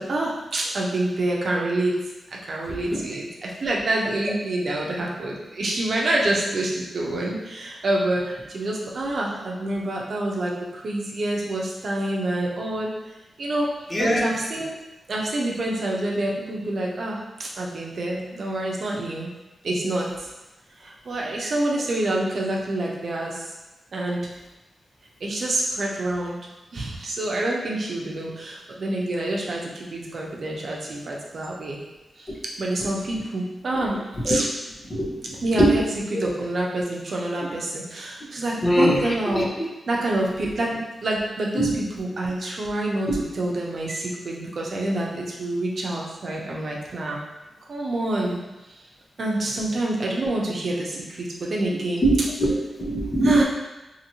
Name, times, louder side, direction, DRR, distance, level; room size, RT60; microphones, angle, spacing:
voice 1, 0.0-2.0 2.3-12.9 13.4-13.7 14.0-14.7 15.1-19.3 19.6-20.1 20.8-23.5 23.9-24.3 25.2-26.4 26.7-31.8 32.2-32.3 32.6-34.5 35.4-35.8 36.1-39.5 39.9-47.2 47.7-48.4 49.2-52.0 53.2-53.4, right 1 dB, 65° right, -2 dB, 0.6 m, -27 dB
voice 2, 13.9-14.3 34.3-34.4 34.9-35.2 35.6-35.7 36.1-36.2 38.6-39.0 39.3-39.4 41.6-41.7 43.1-43.2 52.0-53.4, right 1 dB, 40° left, -3 dB, 0.8 m, -21 dB
2.8 x 2.8 x 2.7 m, 1.0 s
cardioid pair, 45°, 0 cm